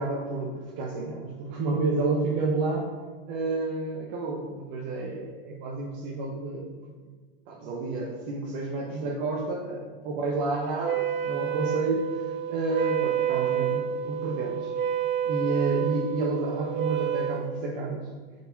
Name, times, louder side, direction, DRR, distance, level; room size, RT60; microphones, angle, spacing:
voice 1, 0.0-2.9 3.3-6.7 7.5-14.7 15.2-18.1, right 3 dB, 60° right, -3 dB, 1.1 m, -30 dB
Wind instrument woodwind instrument, 10.8-17.4, right 9 dB, 35° right, 0.6 m, -29 dB
5.0 x 4.5 x 4.1 m, 1.4 s
hypercardioid pair, 110°, 31 cm